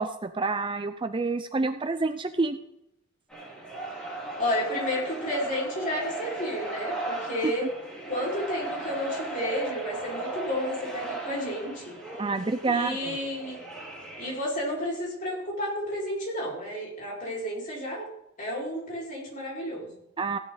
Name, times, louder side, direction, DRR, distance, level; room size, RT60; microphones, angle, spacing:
voice 1, 0.0-2.6 7.4-7.5 12.2-13.2 20.2-20.4, right 3 dB, 20° right, 10 dB, 0.5 m, -28 dB
sound 1, 3.3-14.4, right 2 dB, 5° left, 5.5 m, -36 dB
voice 2, 4.4-7.7 8.1-11.9 12.7-13.6 14.2-18.1 18.4-20.0, left 1 dB, 35° left, -4 dB, 4.9 m, -31 dB
16.0 x 11.0 x 4.0 m, 0.81 s
head